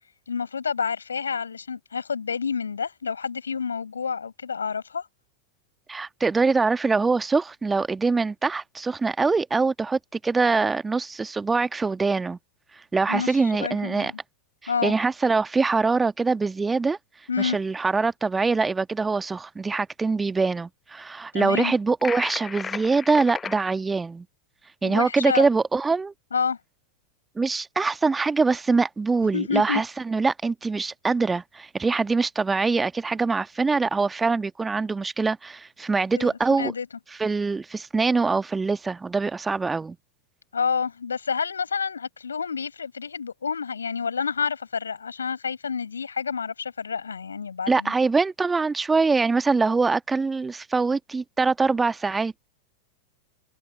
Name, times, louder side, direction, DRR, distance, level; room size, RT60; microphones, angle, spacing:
voice 1, 0.3-5.1 13.1-14.2 14.7-14.9 17.3-17.6 21.3-21.7 24.8-25.5 26.3-26.6 29.3-29.8 36.2-36.3 36.6-36.9 40.5-47.9, left 6 dB, 70° left, 6.5 m, -29 dB
voice 2, 5.9-12.4 12.9-14.1 14.6-17.0 17.4-24.2 24.8-26.1 27.3-36.7 37.2-40.0 47.7-52.3, right 4 dB, 10° right, 1.4 m, -23 dB
sound 1, 22.0-23.6, left 6 dB, 20° left, 1.1 m, -33 dB
figure-of-eight pair, 90°, 0 cm